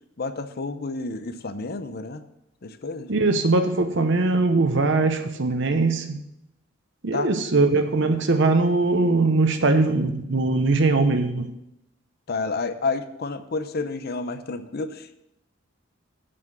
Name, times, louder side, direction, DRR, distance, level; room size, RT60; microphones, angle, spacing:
voice 1, 0.2-2.2 2.6-3.1 7.1-7.3 12.3-15.2, left 3 dB, 55° left, 11 dB, 0.6 m, -30 dB
voice 2, 3.1-6.2 7.0-11.5, right 3 dB, 65° right, 7 dB, 0.9 m, -21 dB
7.6 x 5.9 x 7.9 m, 0.85 s
head